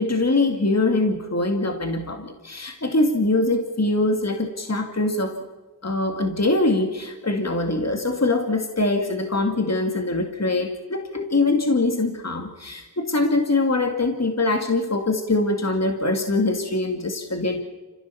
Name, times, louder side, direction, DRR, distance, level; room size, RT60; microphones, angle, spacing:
voice 1, 0.0-5.4 5.8-17.6, left 2 dB, 40° left, 5 dB, 2.4 m, -23 dB
29.0 x 15.5 x 7.1 m, 1.3 s
wide cardioid pair, 45°, 40 cm